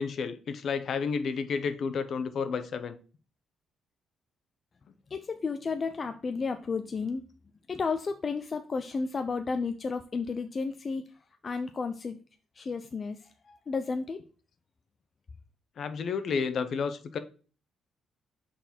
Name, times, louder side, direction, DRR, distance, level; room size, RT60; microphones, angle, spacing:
voice 1, 0.0-3.0 15.8-17.2, left 5 dB, 60° left, 0.8 m, -31 dB
voice 2, 5.1-7.2 7.7-11.0 11.4-12.2 12.5-14.2, left 4 dB, 40° left, 0.5 m, -32 dB
5.8 x 4.2 x 4.3 m
cardioid pair, 90°, 0 cm